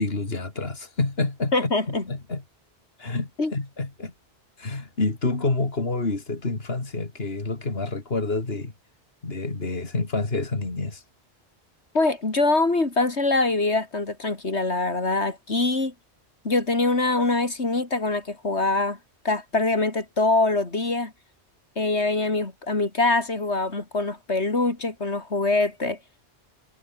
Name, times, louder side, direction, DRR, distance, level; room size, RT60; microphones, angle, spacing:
voice 1, 0.0-2.4 3.0-4.1 4.6-8.7 9.2-11.0, left 3 dB, 65° left, 3.4 m, -28 dB
voice 2, 1.5-2.0 3.4-3.5 11.9-15.9 16.4-19.0 19.3-21.1 21.8-26.0, left 3 dB, 80° left, 3.6 m, -24 dB
omnidirectional pair, 1.1 m